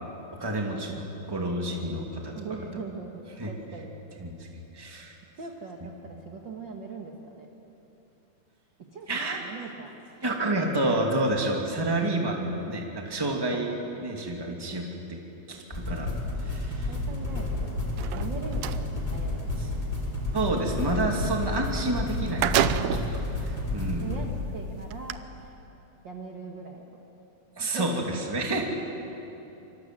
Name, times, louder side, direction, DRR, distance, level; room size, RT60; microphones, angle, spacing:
voice 1, 0.4-2.3 3.4-3.5 4.2-4.5 4.7-5.1 9.1-9.4 10.2-13.7 14.0-15.2 15.5-16.1 16.4-16.9 20.3-22.9 23.4-24.1 27.6-28.6, right 1 dB, 10° right, 0 dB, 1.9 m, -29 dB
voice 2, 2.3-4.1 5.4-7.5 8.9-9.1 9.4-9.9 13.5-13.6 16.9-19.8 22.6-23.5 24.0-25.5 26.0-26.8 27.6-27.9, right 4 dB, 45° right, 1 dB, 1.7 m, -41 dB
sound 1, 15.7-25.3, left 2 dB, 10° left, 4.2 m, -31 dB
sound 2, 17.9-18.8 21.7-21.8 22.1-23.2 23.9-24.0 24.9-25.1, right 11 dB, 75° right, 2.0 m, -27 dB
27.0 x 24.5 x 7.7 m, 3.0 s
omnidirectional pair, 4.3 m